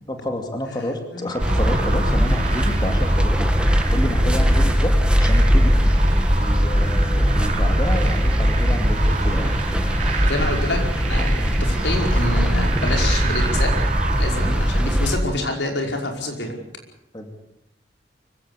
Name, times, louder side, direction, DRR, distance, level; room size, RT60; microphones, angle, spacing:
voice 1, 0.1-3.5 3.9-5.8 6.4-9.6 14.4-14.6 17.1-17.3, left 1 dB, 25° left, 5 dB, 2.5 m, -29 dB
sound 1, 1.3-15.6, right 5 dB, 45° right, 3.1 m, -32 dB
sound 2, 1.4-15.2, equal, 5° right, 1.9 m, -19 dB
voice 2, 10.2-13.7 14.2-16.5, left 2 dB, 90° left, 2 dB, 5.4 m, -27 dB
24.5 x 16.5 x 8.3 m, 0.79 s
head